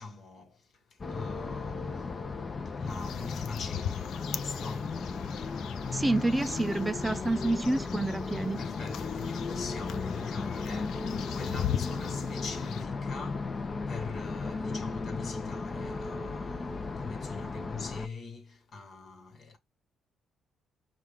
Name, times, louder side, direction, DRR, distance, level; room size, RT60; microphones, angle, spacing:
voice 1, 0.0-2.1 2.6-5.0 8.6-19.6, left 4 dB, 55° left, 1.5 m, -43 dB
sound 1, 1.0-18.1, left 4 dB, 35° left, 0.7 m, -35 dB
sound 2, 2.9-12.8, left 10 dB, 75° left, 0.4 m, -39 dB
voice 2, 5.9-8.6, right 2 dB, 15° right, 0.4 m, -28 dB
5.3 x 2.5 x 3.5 m
cardioid pair, 90°, 0 cm